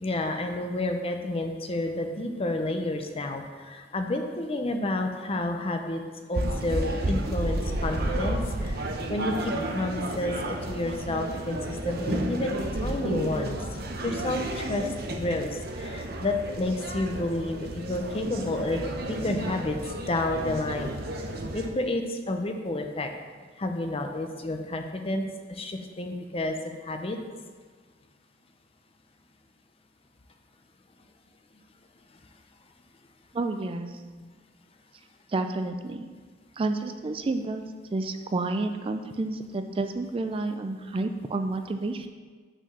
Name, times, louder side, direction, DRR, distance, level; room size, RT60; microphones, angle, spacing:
voice 1, 0.0-6.0 6.3-8.8 9.1-13.6 14.0-14.9 15.2-18.8 19.1-19.8 20.1-21.0 21.5-23.1 23.6-26.5 26.8-27.2 34.2-34.3 40.9-41.0, left 2 dB, 30° left, 5 dB, 0.6 m, -30 dB
sound 1, 6.3-21.7, right 1 dB, 55° right, 0.8 m, -32 dB
voice 2, 33.3-33.9 35.3-36.1 36.6-37.6 37.9-42.1, right 2 dB, 30° right, 7 dB, 0.4 m, -30 dB
6.1 x 4.6 x 6.6 m, 1.5 s
head